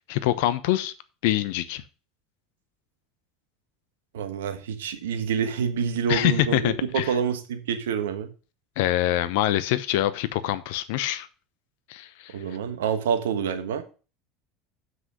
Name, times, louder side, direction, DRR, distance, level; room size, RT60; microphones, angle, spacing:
voice 1, 0.1-0.9 1.2-1.8 6.1-7.2 8.8-11.3 11.9-12.3, left 14 dB, 70° left, 0.8 m, -25 dB
voice 2, 4.1-8.3 12.3-13.8, right 7 dB, 75° right, 1.3 m, -27 dB
7.5 x 6.2 x 6.3 m
hypercardioid pair, 75°, 0 cm